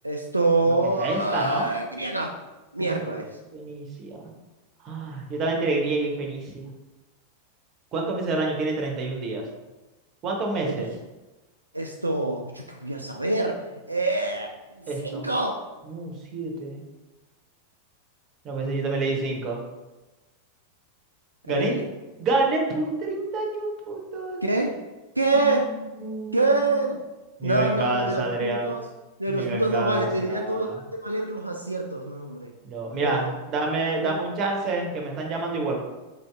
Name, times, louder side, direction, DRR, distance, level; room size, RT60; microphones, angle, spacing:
voice 1, 0.0-2.3 2.7-3.3 10.7-10.9 11.7-13.6 13.9-15.6 21.5-21.8 24.4-24.7 25.2-25.7 26.3-27.0 27.4-28.8 29.2-32.5 32.9-33.3 33.9-34.2, right 2 dB, 85° right, 1 dB, 0.3 m, -26 dB
voice 2, 0.6-1.7 2.8-3.2 3.5-4.3 4.8-6.7 7.9-9.4 10.2-10.9 14.9-15.3 15.8-16.8 18.4-19.6 21.5-21.8 22.2-24.4 25.3-26.9 27.4-28.8 29.3-30.8 32.6-35.8, right 3 dB, 30° right, 1 dB, 0.9 m, -28 dB
4.0 x 2.7 x 3.3 m, 1.1 s
figure-of-eight pair, 90°, 0 cm